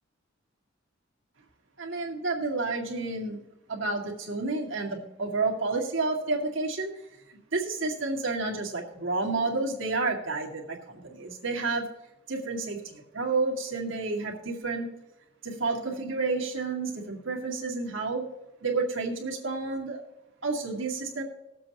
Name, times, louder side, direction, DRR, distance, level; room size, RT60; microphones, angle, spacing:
voice 1, 1.8-3.4 3.7-6.9 7.3-11.9 12.3-14.9 15.4-18.3 18.6-20.0 20.4-21.2, right 3 dB, 80° right, -1 dB, 2.2 m, -30 dB
20.5 x 7.6 x 2.9 m, 0.95 s
head